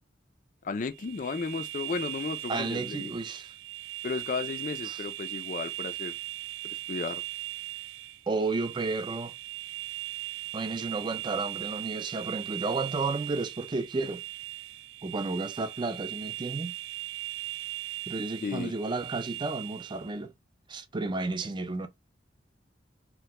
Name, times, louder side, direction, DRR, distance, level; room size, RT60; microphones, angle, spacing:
voice 1, 0.6-3.1 4.0-6.2 6.6-7.2 18.4-18.7, left 4 dB, 45° left, 0.4 m, -34 dB
sound 1, 0.9-20.1, right 17 dB, 85° right, 0.4 m, -39 dB
voice 2, 2.5-3.5 4.8-5.0 8.3-9.3 10.5-14.2 15.0-16.8 18.1-20.3 20.7-21.9, right 3 dB, 25° right, 0.4 m, -32 dB
2.9 x 2.2 x 3.2 m
head